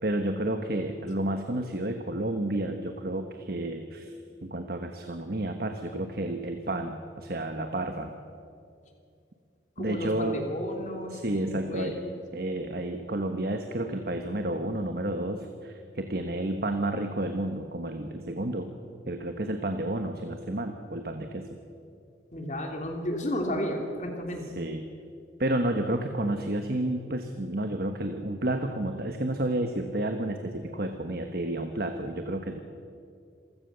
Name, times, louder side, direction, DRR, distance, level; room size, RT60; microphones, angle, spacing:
voice 1, 0.0-4.1 4.4-8.1 9.8-10.4 11.1-12.0 12.3-18.7 19.1-21.6 24.5-24.9 25.4-32.6, right 1 dB, 60° right, 6 dB, 1.2 m, -31 dB
voice 2, 9.8-12.2 22.3-24.4, equal, 45° left, 2 dB, 3.0 m, -33 dB
27.5 x 15.5 x 6.8 m, 2.4 s
head